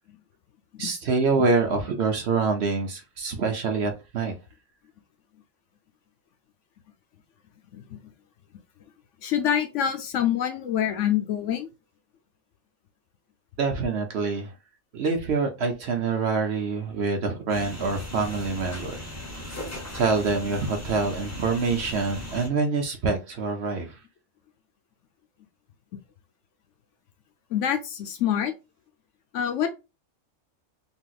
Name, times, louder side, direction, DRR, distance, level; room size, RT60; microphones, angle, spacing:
voice 1, 0.8-4.3 13.6-14.5 14.9-19.0 19.3-19.6 19.9-24.0, right 4 dB, 60° right, 0.9 m, -26 dB
voice 2, 9.2-11.7 27.5-28.5 29.3-29.7, left 9 dB, 70° left, 0.8 m, -26 dB
sound 1, 17.5-22.5, left 1 dB, 15° left, 0.6 m, -38 dB
3.4 x 2.8 x 2.3 m
omnidirectional pair, 1.4 m